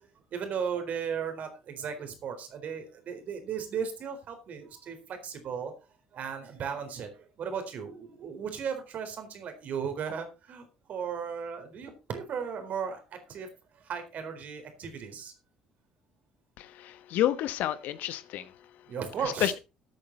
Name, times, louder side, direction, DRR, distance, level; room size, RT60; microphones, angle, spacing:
voice 1, 0.0-5.7 6.1-13.5 13.7-15.3 18.9-19.5, right 7 dB, 55° right, 7 dB, 4.1 m, -36 dB
voice 2, 16.6-18.5 19.4-19.6, left 12 dB, 65° left, 14 dB, 1.2 m, -29 dB
13.5 x 8.9 x 4.2 m, 0.29 s
hypercardioid pair, 55°, 3 cm